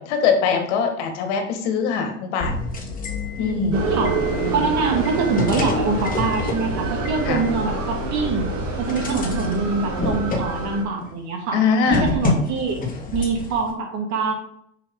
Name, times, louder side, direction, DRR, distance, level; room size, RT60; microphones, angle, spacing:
voice 1, 0.0-2.6 3.4-3.8 7.3-7.5 11.5-12.2, left 5 dB, 65° left, 5 dB, 1.8 m, -22 dB
sound 1, 2.4-11.1 11.9-13.7, left 3 dB, 20° left, 2.0 m, -29 dB
voice 2, 3.4-4.2 4.5-8.5 8.8-11.6 11.9-12.9 13.1-14.3, right 4 dB, 50° right, 2 dB, 2.4 m, -24 dB
sound 2, 3.7-10.8, right 3 dB, 85° right, 2.1 m, -27 dB
6.6 x 6.2 x 3.8 m, 0.69 s
hypercardioid pair, 95°, 37 cm